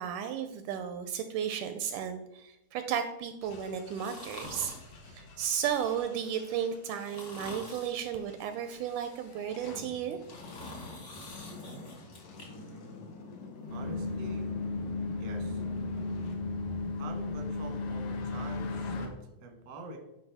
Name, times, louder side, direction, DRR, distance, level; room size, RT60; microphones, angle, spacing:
voice 1, 0.0-4.7 5.0-10.2, right 8 dB, 80° right, 8 dB, 1.9 m, -34 dB
sound 1, 3.4-16.4, left 3 dB, 60° left, 1.9 m, -48 dB
sound 2, 3.9-4.9 5.4-6.2 6.9-8.0 8.6-9.5 10.0-12.5 12.9-13.0, left 1 dB, 45° left, 0.9 m, -47 dB
voice 2, 12.4-13.1 13.6-14.5 15.2-15.6 17.0-20.0, right 2 dB, 55° right, 4 dB, 1.2 m, -46 dB
sound 3, 13.7-19.1, left 3 dB, 85° left, 2.7 m, -34 dB
10.5 x 4.8 x 3.4 m, 0.92 s
omnidirectional pair, 3.8 m